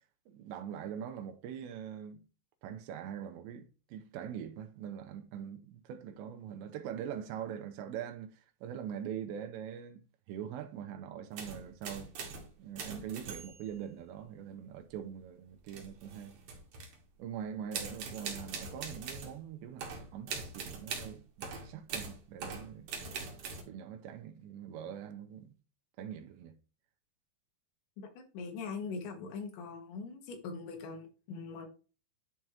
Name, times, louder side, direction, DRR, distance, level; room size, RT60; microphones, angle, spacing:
voice 1, 0.3-2.2 2.6-10.0 10.3-12.1 12.6-16.3 17.2-22.9 23.2-25.6 26.0-26.6, right 9 dB, 90° right, 2.9 m, -43 dB
sound 1, 11.3-12.5 12.8-13.7 15.7-17.0 17.7-19.4 19.8-23.6, right 5 dB, 60° right, 2.5 m, -42 dB
voice 2, 28.0-31.7, left 4 dB, 80° left, 3.5 m, -42 dB
10.5 x 4.8 x 2.9 m
omnidirectional pair, 5.1 m